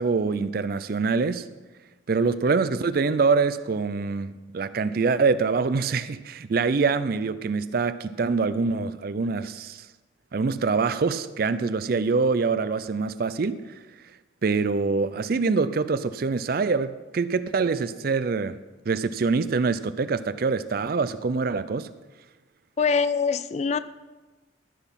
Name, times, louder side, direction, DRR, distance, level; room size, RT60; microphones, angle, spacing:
voice 1, 0.0-1.5 2.1-9.9 10.3-13.6 14.4-18.6 18.9-21.9, right 4 dB, 50° right, 0.4 m, -25 dB
voice 2, 22.8-23.8, left 5 dB, 35° left, 0.3 m, -23 dB
13.5 x 6.1 x 5.8 m
head